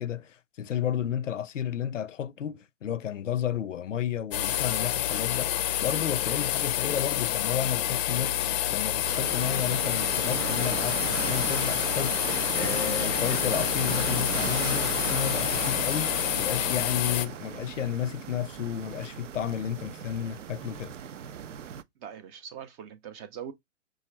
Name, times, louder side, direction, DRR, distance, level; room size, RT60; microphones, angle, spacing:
voice 1, 0.0-20.9, left 9 dB, 80° left, 0.6 m, -32 dB
sound 1, 4.3-17.3, left 12 dB, 35° left, 0.5 m, -28 dB
sound 2, 9.0-21.8, right 8 dB, 75° right, 0.6 m, -36 dB
voice 2, 22.0-23.5, right 8 dB, 20° right, 0.4 m, -41 dB
6.1 x 2.4 x 3.1 m
figure-of-eight pair, 110°, 37 cm